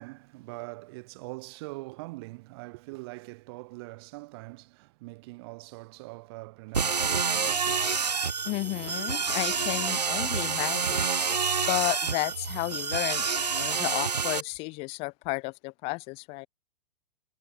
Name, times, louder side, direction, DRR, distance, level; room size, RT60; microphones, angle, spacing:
voice 1, 0.0-8.2 9.0-9.1, right 24 dB, 40° right, 0.7 m, -43 dB
sound 1, 6.7-14.4, right 5 dB, 90° right, 0.4 m, -28 dB
voice 2, 8.5-11.1 11.6-13.2 13.6-16.5, left 26 dB, 30° left, 0.5 m, -32 dB
figure-of-eight pair, 105°, 20 cm